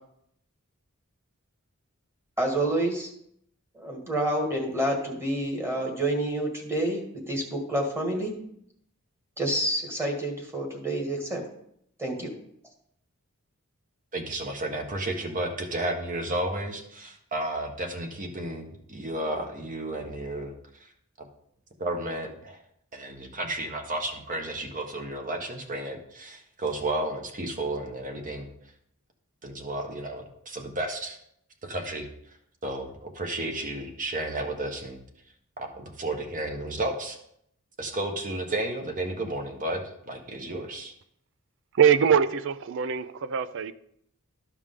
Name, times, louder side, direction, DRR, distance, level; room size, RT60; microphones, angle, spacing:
voice 1, 2.4-3.1 3.7-8.3 9.4-11.4 12.0-12.3, right 1 dB, 10° right, 1.7 m, -28 dB
voice 2, 14.1-20.5 21.8-22.6 22.9-28.5 29.4-31.2 31.7-32.1 32.6-35.0 35.6-37.2 37.8-40.9, right 1 dB, 40° right, 1.2 m, -32 dB
voice 3, 41.8-43.7, right 7 dB, 60° right, 0.4 m, -22 dB
12.5 x 4.9 x 3.7 m
head